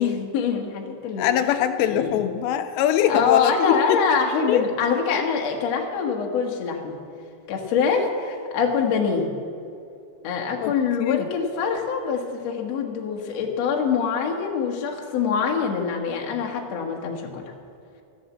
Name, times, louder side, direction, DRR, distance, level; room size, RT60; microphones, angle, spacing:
voice 1, 0.0-1.3 1.8-2.1 3.1-7.0 7.5-9.3 10.2-17.4, left 6 dB, 60° left, 1 dB, 1.8 m, -24 dB
voice 2, 1.2-4.0 4.5-4.9 10.6-10.7 11.0-11.3, left 10 dB, 80° left, 8 dB, 2.7 m, -23 dB
14.5 x 11.5 x 7.4 m, 2.7 s
omnidirectional pair, 5.2 m